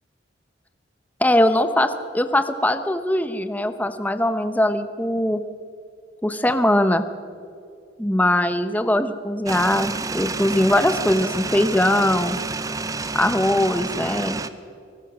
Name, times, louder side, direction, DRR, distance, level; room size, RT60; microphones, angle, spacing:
voice 1, 1.2-5.4 6.2-7.1 8.0-12.4 13.1-14.4, left 1 dB, 10° left, 10 dB, 0.8 m, -21 dB
sound 1, 9.5-14.5, right 3 dB, 20° right, 0.7 m, -29 dB
24.5 x 19.0 x 6.1 m, 2.4 s
head